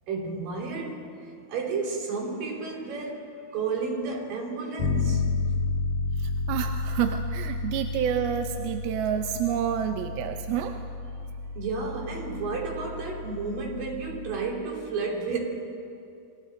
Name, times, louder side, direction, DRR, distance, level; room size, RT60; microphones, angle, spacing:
voice 1, 0.1-1.0 1.5-5.2 11.6-15.4, right 4 dB, 55° right, -1 dB, 4.5 m, -32 dB
Bass guitar, 4.8-14.5, left 3 dB, 50° left, 4.3 m, -31 dB
voice 2, 6.5-10.8, right 9 dB, 75° right, 6 dB, 2.4 m, -28 dB
29.0 x 22.5 x 4.4 m, 2.5 s
omnidirectional pair, 5.0 m